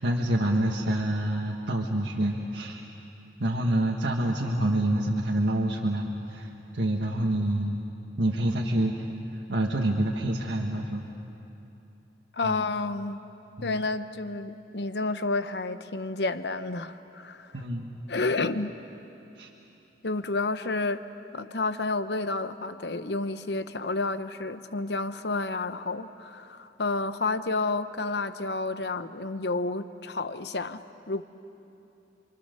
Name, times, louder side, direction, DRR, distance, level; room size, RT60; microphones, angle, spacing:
voice 1, 0.0-2.8 3.4-7.8 8.2-8.9 9.5-11.1 12.4-12.6 13.6-13.7 17.5-17.9 19.4-19.5, right 1 dB, 90° right, -1 dB, 1.7 m, -27 dB
voice 2, 12.3-13.3 13.6-17.5 18.1-18.8 20.0-21.0 21.3-31.2, left 3 dB, 70° left, 11 dB, 0.9 m, -30 dB
28.5 x 24.5 x 6.8 m, 2.9 s
head